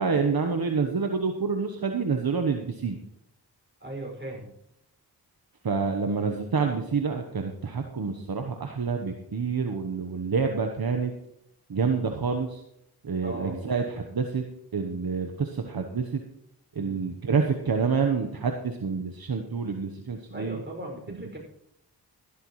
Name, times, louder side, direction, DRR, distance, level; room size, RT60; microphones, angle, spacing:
voice 1, 0.0-3.0 5.6-11.1 11.7-12.6 13.0-14.4 14.7-16.2 16.7-20.6, right 5 dB, 60° right, 4 dB, 1.1 m, -27 dB
voice 2, 3.8-4.5 13.2-13.6 16.7-17.0 20.3-21.4, right 1 dB, 25° right, -1 dB, 5.9 m, -38 dB
15.0 x 12.5 x 3.2 m, 0.77 s
cardioid pair, 40°, 41 cm